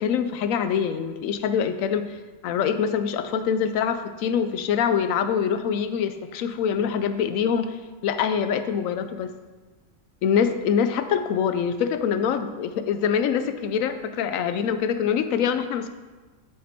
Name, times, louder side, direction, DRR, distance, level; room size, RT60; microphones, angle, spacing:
voice 1, 0.0-2.1 2.4-7.8 8.0-9.3 10.2-15.9, left 7 dB, 75° left, 10 dB, 1.0 m, -24 dB
6.8 x 6.6 x 4.4 m, 1.3 s
omnidirectional pair, 1.4 m